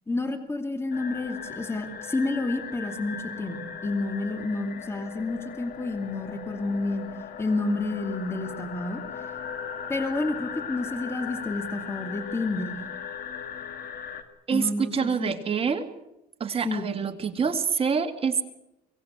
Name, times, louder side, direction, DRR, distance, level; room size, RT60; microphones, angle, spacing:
voice 1, 0.1-7.0 7.4-9.0 9.9-12.8 14.5-15.4 16.6-16.9, left 2 dB, 15° left, 7 dB, 2.6 m, -30 dB
sound 1, 0.9-14.2, left 7 dB, 60° left, 2.1 m, -38 dB
voice 2, 14.5-15.9 16.4-18.4, right 6 dB, 35° right, 6 dB, 2.3 m, -26 dB
24.0 x 18.0 x 8.1 m, 0.88 s
cardioid pair, 110°, 17 cm